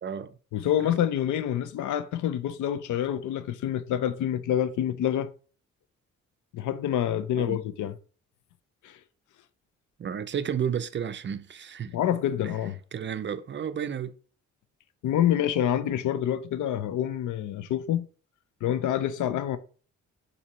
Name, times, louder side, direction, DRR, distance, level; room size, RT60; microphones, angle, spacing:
voice 1, 0.0-0.4 0.8-0.9 7.4-7.6 10.0-12.0 12.9-14.1, right 8 dB, 40° right, 0.4 m, -32 dB
voice 2, 0.5-5.3 6.5-7.9 8.8-9.0 11.9-12.8 15.0-18.1 18.6-19.6, left 10 dB, 75° left, 0.5 m, -27 dB
4.4 x 2.8 x 4.1 m
cardioid pair, 75°, 31 cm